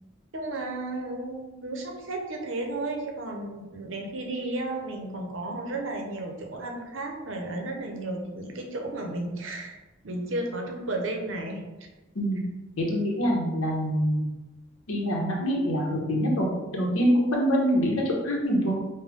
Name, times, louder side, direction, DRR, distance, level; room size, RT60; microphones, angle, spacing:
voice 1, 0.3-9.8 10.0-11.6, right 2 dB, 65° right, 2 dB, 0.7 m, -33 dB
voice 2, 12.8-14.2 14.9-18.7, equal, 80° left, -2 dB, 1.0 m, -25 dB
5.3 x 2.2 x 3.5 m, 1.1 s
head